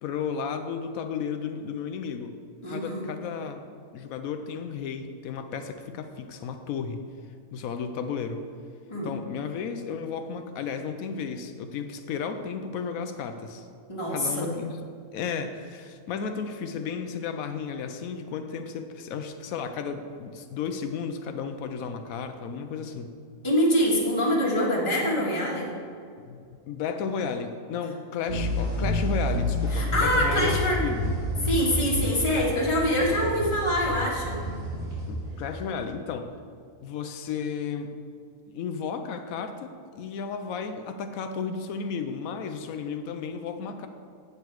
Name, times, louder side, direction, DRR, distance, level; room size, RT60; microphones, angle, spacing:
voice 1, 0.0-2.4 2.7-3.6 3.9-7.0 7.5-8.4 9.0-13.7 14.1-14.8 15.1-23.1 26.3-31.1 35.1-36.3 36.8-37.9 38.5-43.9, left 6 dB, 90° left, 7 dB, 1.0 m, -33 dB
voice 2, 2.6-3.0 8.9-9.1 13.9-14.6 23.4-25.7 29.7-30.8 31.4-34.4, equal, 20° left, -5 dB, 1.6 m, -25 dB
sound 1, 28.3-35.7, equal, 80° right, 2.6 m, -29 dB
8.4 x 7.7 x 4.7 m, 2.3 s
omnidirectional pair, 1.4 m